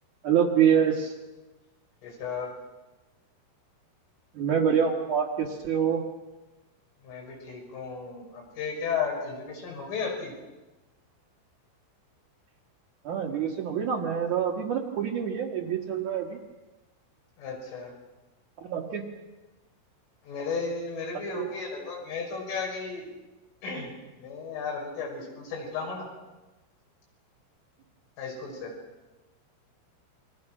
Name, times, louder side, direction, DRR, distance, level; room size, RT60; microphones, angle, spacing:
voice 1, 0.2-1.1 4.3-6.0 13.0-16.4 18.6-19.1 21.1-21.5, right 8 dB, 55° right, -2 dB, 2.3 m, -26 dB
voice 2, 2.0-2.5 7.0-10.3 17.4-17.9 20.2-23.0 23.6-23.9 24.2-26.1 28.2-28.7, left 5 dB, 70° left, -1 dB, 8.4 m, -34 dB
29.0 x 23.5 x 6.2 m, 1.1 s
omnidirectional pair, 5.9 m